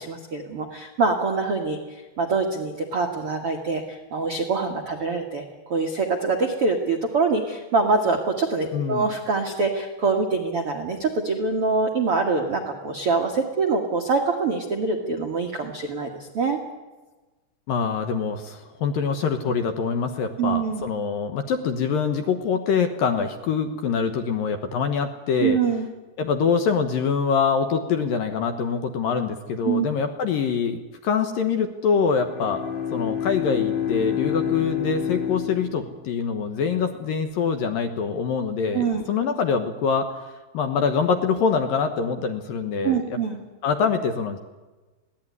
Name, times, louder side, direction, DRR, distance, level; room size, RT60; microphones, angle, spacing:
voice 1, 0.0-1.8 2.2-16.1 16.3-16.6 20.4-20.8 25.4-25.9 29.6-29.9 38.7-39.0 42.8-43.4, right 4 dB, 60° right, 3 dB, 1.5 m, -24 dB
voice 2, 8.7-9.1 17.7-25.6 26.2-32.6 32.9-40.2 40.5-43.2 43.6-44.4, left 6 dB, 65° left, 7 dB, 2.5 m, -24 dB
Bowed string instrument, 32.1-36.4, left 8 dB, 45° left, 1.4 m, -28 dB
22.5 x 17.0 x 9.6 m, 1.2 s
omnidirectional pair, 5.1 m